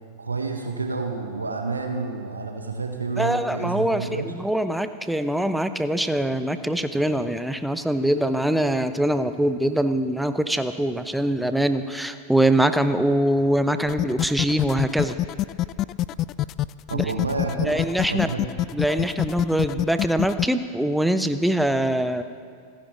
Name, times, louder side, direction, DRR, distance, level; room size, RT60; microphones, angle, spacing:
voice 1, 0.2-4.3 16.9-17.8 18.1-18.4, right 4 dB, 75° right, 4 dB, 1.2 m, -29 dB
voice 2, 3.2-15.2 16.9-17.1 17.6-18.3 18.7-22.2, right 1 dB, ahead, 10 dB, 0.8 m, -23 dB
sound 1, 13.9-20.4, left 14 dB, 35° left, 0.3 m, -25 dB
28.0 x 10.5 x 4.0 m, 2.2 s
figure-of-eight pair, 90°, 0 cm